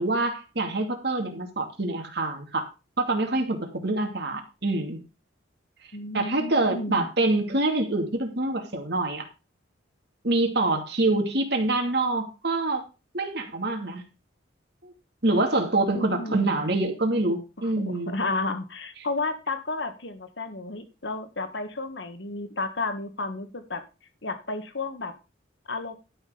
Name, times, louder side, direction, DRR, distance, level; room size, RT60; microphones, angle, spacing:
voice 1, 0.0-2.6 3.0-5.0 6.1-9.2 10.2-12.8 13.1-14.0 14.8-14.9 15.2-18.1, right 2 dB, 55° right, 4 dB, 2.5 m, -26 dB
voice 2, 5.9-7.1 15.9-16.7 17.6-23.8 24.2-25.1 25.6-25.9, left 3 dB, 65° left, 8 dB, 1.7 m, -32 dB
12.0 x 6.5 x 5.1 m, 0.29 s
head